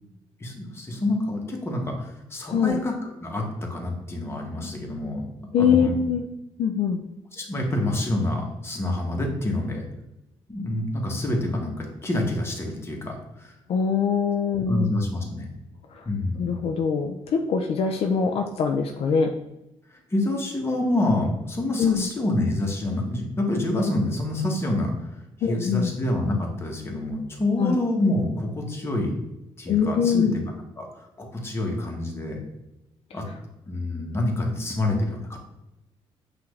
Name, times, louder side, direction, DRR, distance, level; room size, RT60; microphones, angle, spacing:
voice 1, 0.4-2.9 3.2-5.2 5.6-5.9 7.3-9.8 10.5-13.2 13.4-13.5 14.7-15.5 16.1-16.6 20.1-24.9 25.5-29.1 29.6-30.3 30.8-30.9 31.2-32.4 33.1-33.2 33.7-35.4, left 1 dB, 25° left, 0 dB, 1.2 m, -27 dB
voice 2, 2.5-2.8 5.5-6.2 6.6-7.0 13.7-14.9 15.9-16.0 16.4-19.3 21.8-22.1 25.4-26.0 27.6-27.8 29.7-30.4, left 6 dB, 65° left, 4 dB, 0.4 m, -23 dB
5.8 x 2.5 x 3.2 m, 0.92 s
cardioid pair, 90°, 11 cm